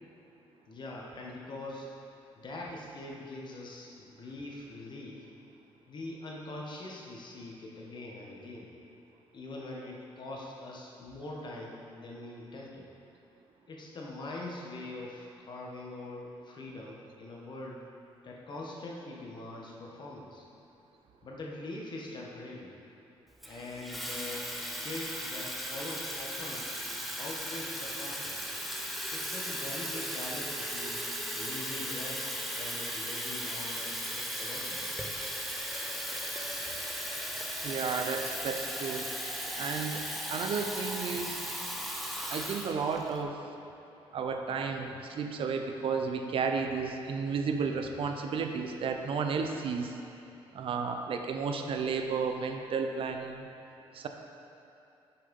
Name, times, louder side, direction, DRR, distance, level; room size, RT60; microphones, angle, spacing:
voice 1, 0.7-2.0 2.4-5.3 5.9-8.7 9.3-12.9 13.7-17.8 18.2-20.4 21.2-22.8 23.5-26.7 27.2-28.4 29.1-31.0 31.4-35.0, left 2 dB, 50° left, -2 dB, 1.4 m, -43 dB
Water tap faucet / Fill (with liquid), 23.4-43.2, equal, ahead, 0.8 m, -37 dB
voice 2, 37.6-39.1 39.6-40.0 40.3-41.4 42.3-43.4 44.1-50.0 50.5-53.5 53.9-54.1, right 5 dB, 65° right, 5 dB, 0.7 m, -32 dB
6.7 x 5.8 x 5.3 m, 2.8 s
cardioid pair, 90°, 10 cm